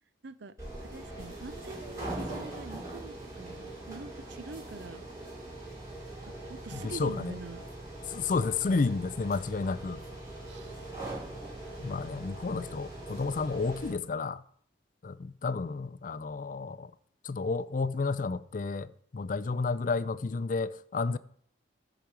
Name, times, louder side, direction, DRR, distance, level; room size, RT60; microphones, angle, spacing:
voice 1, 0.2-0.5 0.8-5.0 6.3-7.6 10.5-10.8, right 3 dB, 55° right, 0.5 m, -45 dB
sound 1, 0.6-13.9, right 1 dB, 15° right, 5.5 m, -42 dB
voice 2, 6.7-7.4 8.1-10.0 11.8-14.4 15.0-16.9 17.2-21.2, left 4 dB, 40° left, 0.4 m, -31 dB
13.5 x 5.0 x 6.1 m
head